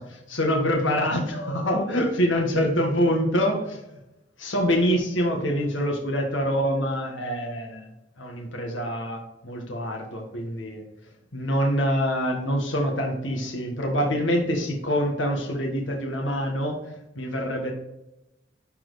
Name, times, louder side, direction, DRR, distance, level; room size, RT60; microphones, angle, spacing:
voice 1, 0.3-4.0 4.4-7.9 8.2-10.8 11.3-17.7, equal, 85° left, 1 dB, 1.7 m, -25 dB
12.0 x 4.4 x 4.1 m, 0.94 s
head